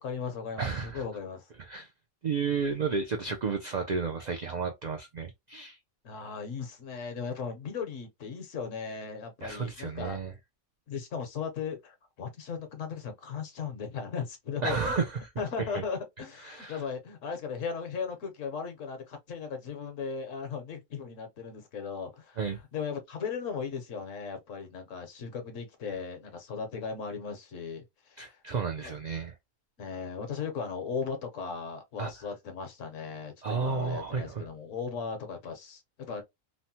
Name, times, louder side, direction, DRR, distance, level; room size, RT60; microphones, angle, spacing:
voice 1, 0.0-1.5 6.0-10.2 10.9-14.9 15.4-22.4 22.7-28.4 28.8-28.9 29.8-36.2, left 5 dB, 70° left, 1.2 m, -37 dB
voice 2, 0.6-1.0 1.6-1.9 2.2-5.8 9.4-10.3 14.6-15.2 15.7-15.8 16.4-16.8 22.4-22.6 28.2-29.4 32.0-32.1 33.4-34.5, right 5 dB, 75° right, 0.4 m, -32 dB
3.1 x 2.1 x 2.7 m
omnidirectional pair, 1.4 m